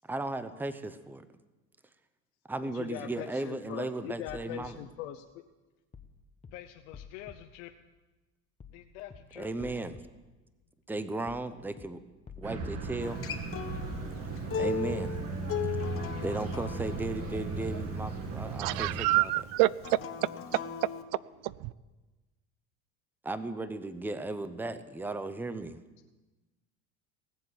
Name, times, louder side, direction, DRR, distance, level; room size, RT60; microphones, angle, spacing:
voice 1, 0.1-1.3 2.5-4.8 9.4-10.0 10.9-12.0 12.4-13.3 14.5-15.2 16.2-18.9 19.2-19.3 23.2-25.8, right 2 dB, 5° right, 0.7 m, -36 dB
voice 2, 2.6-5.2 6.5-7.7 8.7-9.9, left 13 dB, 85° left, 0.9 m, -42 dB
sound 1, 4.3-4.7 5.9-6.1 6.4-6.5 6.9-7.4 8.6-8.8 9.1-9.2 9.6-10.0 11.3-11.5 11.8-11.9 12.3-12.7 13.9-14.1 14.4-14.5, left 6 dB, 20° left, 1.2 m, -49 dB
sound 2, 12.4-19.0, right 3 dB, 45° right, 2.3 m, -36 dB
Acoustic guitar, 13.0-18.2 19.8-21.0, left 6 dB, 40° left, 1.4 m, -37 dB
voice 3, 18.4-20.3 21.1-21.7, right 18 dB, 70° right, 0.6 m, -28 dB
19.5 x 7.6 x 8.2 m
supercardioid pair, 115°, 34 cm